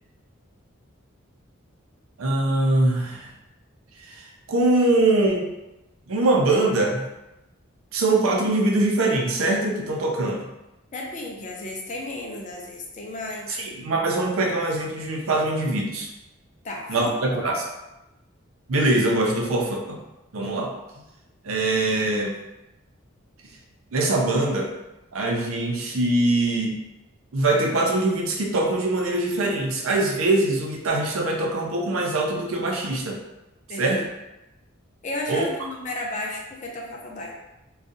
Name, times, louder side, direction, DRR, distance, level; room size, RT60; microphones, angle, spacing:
voice 1, 2.2-3.3 4.0-5.5 6.1-7.0 7.9-10.5 13.5-16.1 16.9-17.6 18.7-20.0 20.3-20.7 21.4-22.3 23.9-24.7 25.1-26.8 27.3-33.2 33.8-34.0 35.3-35.5, right 2 dB, 75° right, 0 dB, 0.6 m, -23 dB
voice 2, 10.9-13.6 16.6-17.2 33.7-34.0 35.0-37.3, left 2 dB, 35° left, -1 dB, 0.5 m, -33 dB
2.6 x 2.4 x 3.8 m, 0.96 s
head